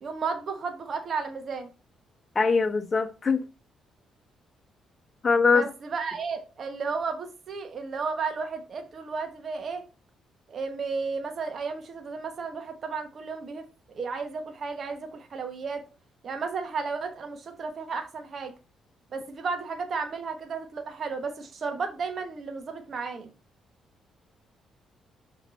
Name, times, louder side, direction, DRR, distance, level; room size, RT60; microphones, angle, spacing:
voice 1, 0.0-1.7 5.5-9.8 10.5-15.8 16.2-18.5 19.1-23.3, right 4 dB, 50° right, 1.0 m, -33 dB
voice 2, 2.3-3.4 5.2-5.6, left 4 dB, 35° left, 1.0 m, -22 dB
6.0 x 4.6 x 4.1 m
cardioid pair, 90°, 0 cm